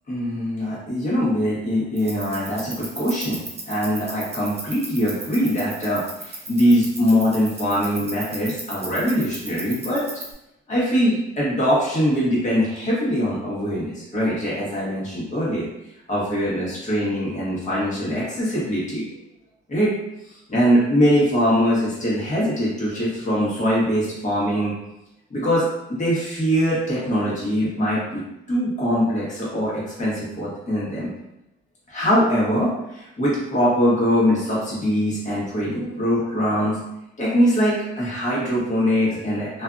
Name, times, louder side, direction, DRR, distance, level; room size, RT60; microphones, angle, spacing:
voice 1, 0.1-3.4 3.7-10.1 10.7-15.7 16.1-19.1 19.7-19.9 20.5-24.7 25.3-28.2 28.5-31.1 31.9-36.8 37.2-39.6, equal, 40° left, -7 dB, 1.3 m, -22 dB
sound 1, 2.0-10.3, right 2 dB, 30° right, 0.7 m, -36 dB
2.6 x 2.5 x 2.4 m, 0.87 s
cardioid pair, 90°, 20 cm